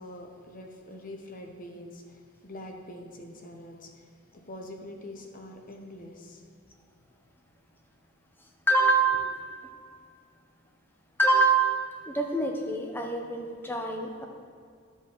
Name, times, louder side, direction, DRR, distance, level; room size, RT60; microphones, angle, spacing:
voice 1, 0.0-6.4, left 1 dB, 40° left, 3 dB, 0.8 m, -44 dB
voice 2, 8.7-9.5 11.2-14.3, right 3 dB, 10° left, 2 dB, 0.6 m, -25 dB
12.5 x 5.5 x 3.1 m, 2.3 s
head